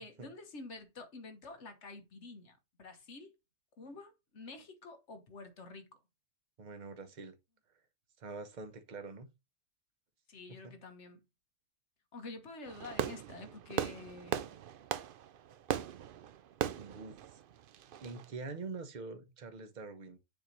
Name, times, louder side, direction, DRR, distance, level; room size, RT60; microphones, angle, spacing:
voice 1, 0.0-3.3 3.8-6.0 10.3-11.2 12.1-14.6, left 3 dB, 55° left, 1.4 m, -49 dB
voice 2, 6.6-7.3 8.2-9.3 10.6-10.7 16.7-17.4 18.0-20.2, right 3 dB, 35° right, 0.9 m, -45 dB
Fireworks, 12.7-18.3, right 9 dB, 70° right, 0.5 m, -39 dB
7.0 x 2.9 x 5.3 m
omnidirectional pair, 1.5 m